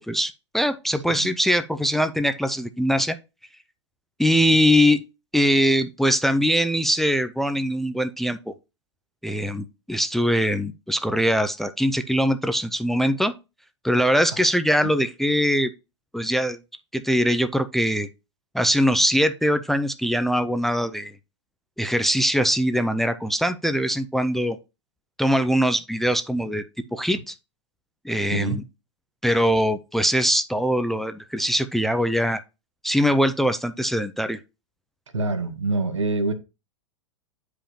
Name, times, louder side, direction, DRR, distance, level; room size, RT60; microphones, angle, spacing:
voice 1, 0.1-3.2 4.2-5.0 5.3-8.5 9.2-13.3 13.8-15.7 16.1-16.6 16.9-18.1 18.5-21.1 21.8-24.6 25.2-26.6 26.9-27.3 28.0-28.6 29.2-32.4 32.8-34.4, equal, ahead, 0.4 m, -22 dB
voice 2, 35.1-36.3, right 3 dB, 80° right, 1.2 m, -25 dB
9.8 x 5.0 x 2.7 m
figure-of-eight pair, 100°, 15 cm